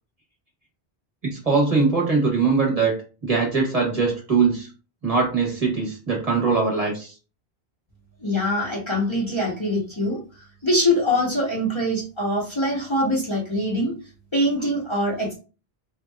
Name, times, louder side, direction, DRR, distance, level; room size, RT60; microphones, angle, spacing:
voice 1, 1.2-3.0 3.2-4.7 5.0-7.1, right 4 dB, 35° right, -2 dB, 1.2 m, -21 dB
voice 2, 8.2-10.2 10.6-13.9 14.3-15.3, left 1 dB, 30° left, -4 dB, 0.9 m, -23 dB
3.6 x 3.0 x 2.3 m, 0.35 s
omnidirectional pair, 1.0 m